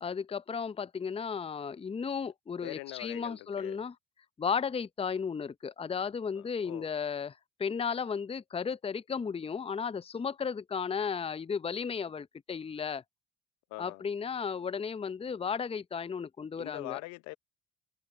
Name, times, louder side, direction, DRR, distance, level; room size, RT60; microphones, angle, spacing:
voice 1, 0.0-3.9 4.4-13.0 13.8-17.0, left 6 dB, 20° left, 0.7 m, -34 dB
voice 2, 2.6-3.8 6.4-6.9 13.7-14.0 16.6-17.4, left 23 dB, 70° left, 0.8 m, -43 dB
hypercardioid pair, 55°, 29 cm